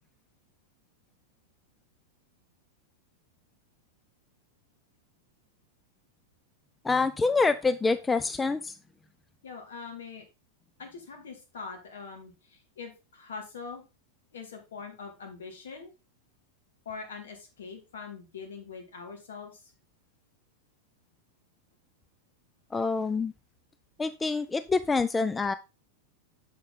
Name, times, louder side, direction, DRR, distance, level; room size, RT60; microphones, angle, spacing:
voice 1, 6.8-8.7 22.7-23.3 24.0-25.5, left 4 dB, 10° left, 12 dB, 0.3 m, -26 dB
voice 2, 9.4-10.3 10.8-13.8 14.3-15.9 16.9-19.6, left 5 dB, 65° left, 3 dB, 2.2 m, -43 dB
6.7 x 6.2 x 3.8 m, 0.29 s
figure-of-eight pair, 90°, 0 cm